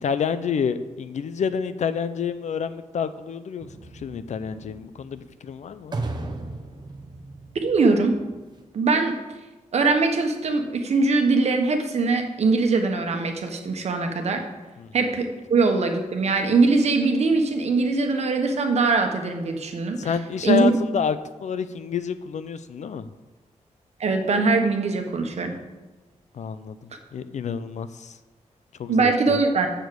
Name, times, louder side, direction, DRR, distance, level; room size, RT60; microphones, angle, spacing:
voice 1, 0.0-3.7 4.0-6.0 14.8-14.9 20.0-23.1 26.3-28.1 28.8-29.4, left 6 dB, 65° left, 13 dB, 0.6 m, -28 dB
sound 1, 3.6-8.6, right 2 dB, 35° right, 0.9 m, -36 dB
voice 2, 7.6-8.2 8.7-9.2 9.7-14.4 14.9-20.1 20.4-20.7 24.0-25.6 28.9-29.7, right 3 dB, 55° right, 5 dB, 1.3 m, -22 dB
7.2 x 6.6 x 7.9 m, 1.2 s
wide cardioid pair, 170°, 13 cm